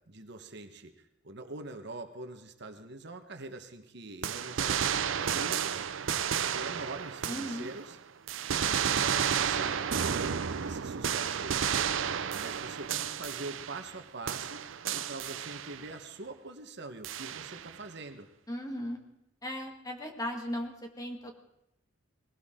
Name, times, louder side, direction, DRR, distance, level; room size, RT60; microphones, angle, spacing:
voice 1, 0.1-0.9 1.2-6.1 6.4-8.0 8.5-18.3, right 2 dB, 60° right, 7 dB, 1.3 m, -44 dB
sound 1, 4.2-7.9 8.3-14.0 14.3-15.9 17.0-17.8, right 8 dB, 80° right, 0.6 m, -32 dB
voice 2, 7.3-7.7 18.5-19.0 19.4-21.3, equal, 20° left, 3 dB, 1.9 m, -37 dB
20.5 x 16.5 x 3.8 m, 0.83 s
head